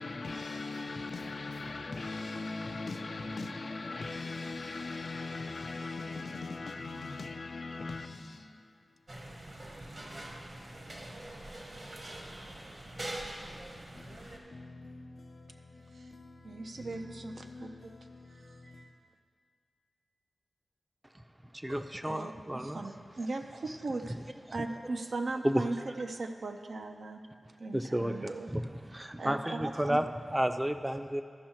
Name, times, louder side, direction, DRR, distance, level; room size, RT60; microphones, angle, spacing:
voice 1, 0.0-8.8 13.9-18.9, left 3 dB, 70° left, 0.5 m, -41 dB
sound 1, 9.1-14.4, right 1 dB, 55° right, 1.3 m, -44 dB
voice 2, 16.4-17.9 18.3-19.0 21.7-24.2 24.5-27.2 27.6-28.5 29.2-30.0, right 3 dB, 75° right, 0.6 m, -38 dB
voice 3, 21.5-22.9 24.2-24.3 24.6-24.7 25.4-26.0 27.7-31.2, right 1 dB, 15° right, 0.5 m, -32 dB
13.5 x 5.5 x 4.4 m
cardioid pair, 45°, 0 cm